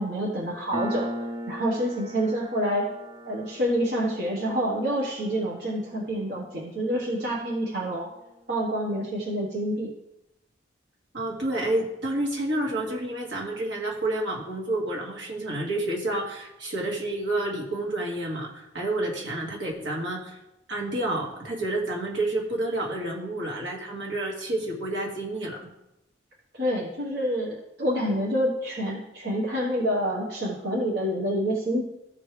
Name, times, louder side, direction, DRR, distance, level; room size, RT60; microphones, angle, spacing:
voice 1, 0.0-2.9 3.2-8.1 8.5-9.9 26.5-31.8, equal, 60° right, -3 dB, 1.3 m, -27 dB
Piano, 0.7-7.9, equal, 25° right, 0.8 m, -39 dB
voice 2, 11.1-20.4 20.7-25.6, right 1 dB, 80° right, -2 dB, 2.0 m, -29 dB
14.5 x 4.9 x 3.3 m, 0.90 s
head